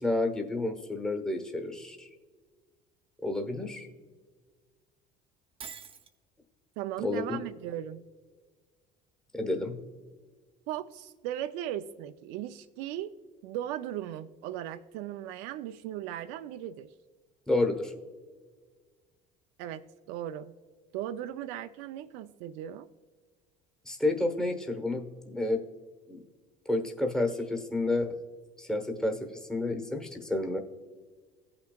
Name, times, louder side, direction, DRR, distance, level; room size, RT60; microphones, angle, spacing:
voice 1, 0.0-2.1 3.2-3.9 7.0-7.4 9.3-9.8 17.5-17.9 23.8-25.6 26.1-26.2 26.7-28.1 28.6-30.6, left 2 dB, 5° left, 4 dB, 1.0 m, -30 dB
Shatter, 5.6-6.1, right 7 dB, 30° right, 0.7 m, -44 dB
voice 2, 6.8-8.0 10.7-13.1 13.4-16.9 19.6-20.5 20.9-22.9, right 11 dB, 80° right, 8 dB, 0.4 m, -37 dB
16.5 x 5.8 x 2.3 m, 1.5 s
supercardioid pair, 100°, 18 cm